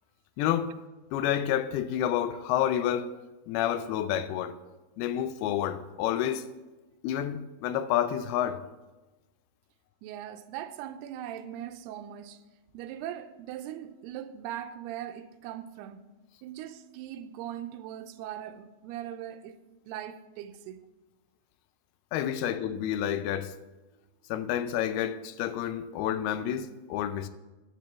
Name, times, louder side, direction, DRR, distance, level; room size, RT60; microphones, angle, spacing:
voice 1, 0.4-0.7 1.1-3.1 3.5-4.6 5.0-6.5 7.0-8.7 22.1-23.5 24.3-27.3, left 10 dB, 85° left, 2.5 m, -29 dB
voice 2, 10.0-12.4 12.7-16.1 16.4-19.6 19.9-20.8, right 11 dB, 90° right, 2.6 m, -40 dB
9.8 x 7.4 x 7.0 m
omnidirectional pair, 4.6 m